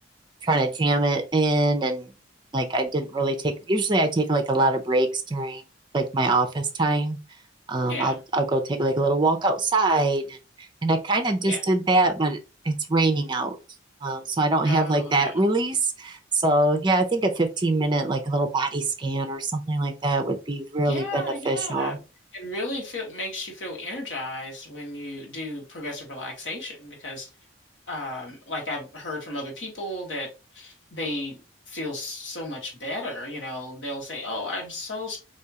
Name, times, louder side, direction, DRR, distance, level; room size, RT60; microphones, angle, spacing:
voice 1, 0.4-2.1 2.5-5.6 5.9-7.2 7.7-10.4 10.8-12.4 12.6-13.6 14.0-22.0, right 2 dB, 25° right, 0.5 m, -23 dB
voice 2, 7.8-8.2 11.4-11.6 14.6-15.4 20.8-22.0 22.3-27.3 27.9-30.3 30.5-31.4 31.7-35.2, left 2 dB, 70° left, 1.4 m, -34 dB
3.5 x 2.7 x 2.8 m
head